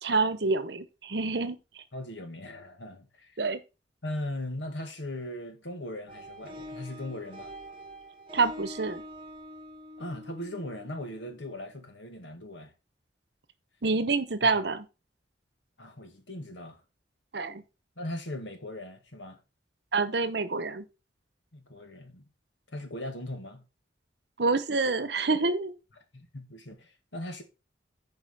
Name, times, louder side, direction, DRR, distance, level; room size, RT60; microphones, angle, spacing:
voice 1, 0.0-1.8 3.4-3.6 8.3-9.0 13.8-14.8 17.3-17.6 19.9-20.8 24.4-25.7, right 3 dB, 65° right, 1.0 m, -27 dB
voice 2, 1.9-3.4 4.0-7.5 10.0-12.7 14.4-14.6 15.8-16.8 18.0-19.4 21.5-22.3 22.7-23.6 26.1-27.4, left 1 dB, 85° left, 2.0 m, -39 dB
sound 1, 6.1-11.6, equal, 30° right, 1.7 m, -45 dB
9.8 x 5.1 x 4.9 m
head